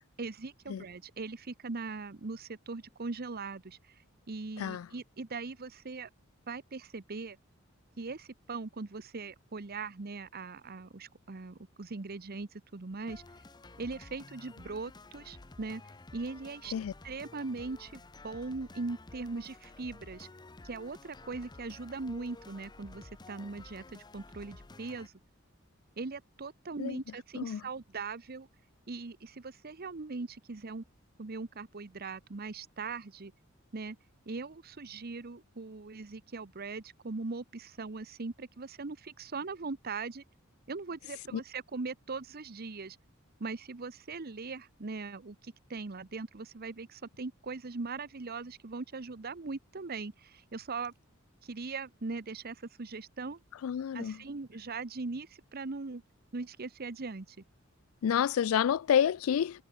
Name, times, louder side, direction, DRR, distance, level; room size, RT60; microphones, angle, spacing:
voice 1, 0.2-3.8 4.3-6.1 6.5-7.4 8.0-13.2 13.8-15.8 16.1-16.7 17.0-20.3 20.6-25.1 26.0-28.5 28.9-30.8 31.2-33.3 33.7-34.0 34.3-40.2 40.7-43.0 43.4-50.9 51.4-53.4 53.9-56.0 56.3-57.4, right 3 dB, 45° right, 0.9 m, -40 dB
sound 1, 13.1-25.1, left 2 dB, 20° left, 0.6 m, -52 dB
voice 2, 53.6-54.2 58.0-59.6, left 8 dB, 75° left, 0.3 m, -29 dB
head